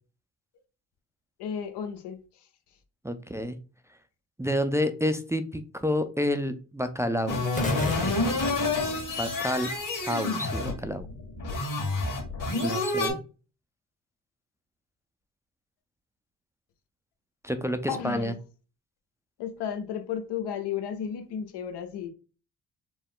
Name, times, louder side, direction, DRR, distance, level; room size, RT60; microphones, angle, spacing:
voice 1, 1.4-2.2 17.9-18.3 19.4-22.1, left 8 dB, 70° left, 0.9 m, -33 dB
voice 2, 3.0-3.5 4.4-7.4 9.2-9.7 10.1-11.1 12.6-13.2 17.4-18.3, equal, 5° right, 0.4 m, -29 dB
sound 1, 7.3-13.1, left 3 dB, 50° left, 1.9 m, -29 dB
sound 2, 7.6-9.7, left 2 dB, 20° left, 1.0 m, -33 dB
4.4 x 2.2 x 3.7 m
supercardioid pair, 55°, 42 cm